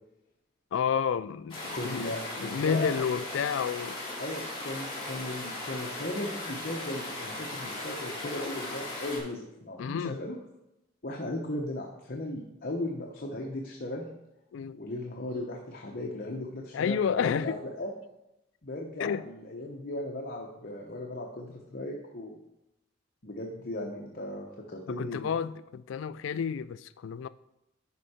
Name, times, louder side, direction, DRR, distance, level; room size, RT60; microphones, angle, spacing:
voice 1, 0.7-4.0 9.8-10.2 14.5-14.8 16.7-17.6 19.0-19.2 25.0-27.3, left 7 dB, 65° left, 0.3 m, -30 dB
sound 1, 1.5-9.2, left 2 dB, 25° left, 2.5 m, -38 dB
voice 2, 1.7-3.2 4.2-10.4 11.0-14.1 14.7-17.9 18.6-22.4 23.2-25.4, left 1 dB, 45° left, 0.9 m, -37 dB
11.5 x 4.5 x 4.3 m
head